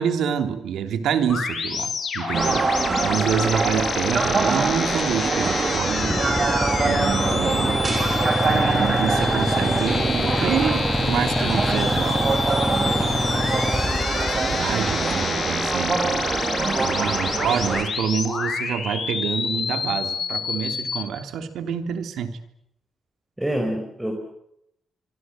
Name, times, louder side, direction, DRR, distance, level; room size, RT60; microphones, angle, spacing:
voice 1, 0.0-6.2 6.8-8.0 8.4-12.4 13.0-13.5 14.3-16.2 16.8-22.4, right 8 dB, 85° right, 7 dB, 3.2 m, -27 dB
sound 1, 1.3-21.0, left 5 dB, 50° left, 6.3 m, -28 dB
sound 2, 2.3-17.8, right 4 dB, 40° right, 3.2 m, -25 dB
Motorcycle / Idling, 6.0-15.9, left 1 dB, 10° left, 1.8 m, -27 dB
voice 2, 16.7-17.0 23.4-24.1, right 1 dB, 10° right, 3 dB, 5.2 m, -28 dB
25.5 x 24.5 x 7.7 m, 0.78 s
cardioid pair, 115°, 0 cm